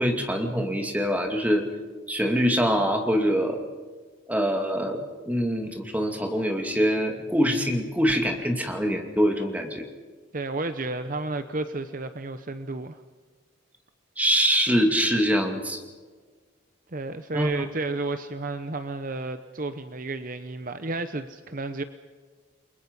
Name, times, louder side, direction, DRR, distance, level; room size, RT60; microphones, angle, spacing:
voice 1, 0.0-1.6 2.1-3.6 4.3-9.8 14.2-15.8 17.3-17.5, equal, 10° right, 3 dB, 2.4 m, -24 dB
voice 2, 10.3-13.0 16.9-21.8, right 2 dB, 45° right, 9 dB, 0.9 m, -32 dB
29.5 x 23.0 x 5.5 m, 1.5 s
head